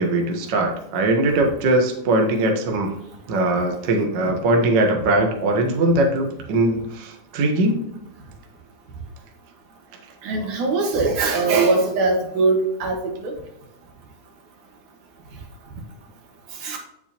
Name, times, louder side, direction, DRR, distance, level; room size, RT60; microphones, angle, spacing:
voice 1, 0.0-2.9 3.3-7.8, right 2 dB, 55° right, 2 dB, 1.3 m, -20 dB
voice 2, 10.2-13.4 16.6-16.8, right 3 dB, 75° right, 2 dB, 3.0 m, -21 dB
9.0 x 7.4 x 2.9 m, 0.80 s
omnidirectional pair, 3.7 m